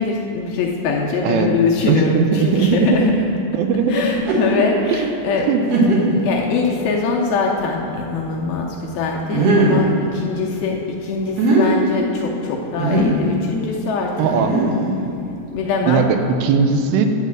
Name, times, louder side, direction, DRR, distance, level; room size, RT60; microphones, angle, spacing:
voice 1, 0.0-3.3 3.9-5.5 6.2-14.6 15.5-16.1, left 4 dB, 80° left, -1 dB, 2.2 m, -22 dB
voice 2, 1.9-3.1 3.5-4.1 4.9-5.1 5.5-5.6 14.2-14.6 15.8-17.1, right 6 dB, 90° right, 7 dB, 2.8 m, -18 dB
sound 1, 4.1-4.6 5.2-5.3 5.7-6.3 6.9-7.0 9.3-9.9 11.2-11.6 12.8-13.2 14.2-15.0, right 2 dB, 65° right, 1.6 m, -18 dB
11.0 x 4.1 x 7.4 m, 2.6 s
omnidirectional pair, 4.8 m